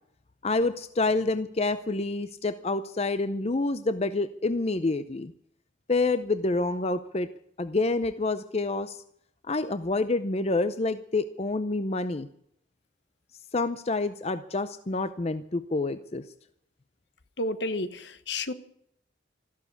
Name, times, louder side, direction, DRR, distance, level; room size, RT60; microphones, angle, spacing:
voice 1, 0.4-5.3 5.9-7.3 7.6-9.0 9.5-12.3 13.5-16.2, left 3 dB, 35° left, 12 dB, 0.6 m, -28 dB
voice 2, 17.4-18.5, left 2 dB, 65° left, 12 dB, 1.2 m, -31 dB
14.0 x 12.0 x 8.3 m, 0.72 s
head